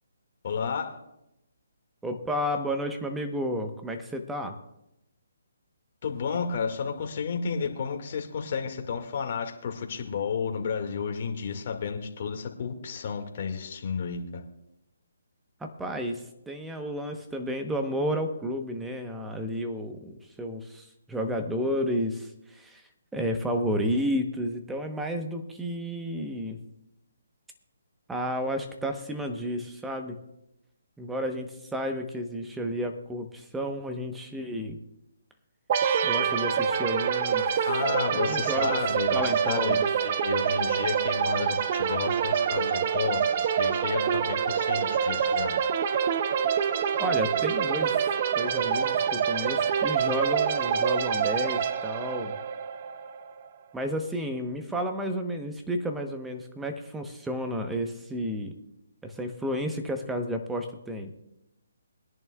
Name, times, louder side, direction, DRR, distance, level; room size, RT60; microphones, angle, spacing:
voice 1, 0.4-1.0 6.0-14.4 37.7-45.5, left 6 dB, 45° left, 3 dB, 2.1 m, -32 dB
voice 2, 2.0-4.6 15.8-22.8 23.1-26.6 28.1-30.2 31.0-34.8 36.0-37.5 38.1-38.8 39.1-39.9 47.0-47.9 48.3-52.4 53.7-58.5 59.0-61.1, equal, 5° right, 5 dB, 1.0 m, -31 dB
sound 1, 35.7-53.3, right 7 dB, 40° right, 0.7 m, -26 dB
22.5 x 10.5 x 2.4 m, 0.86 s
hypercardioid pair, 155°, 0 cm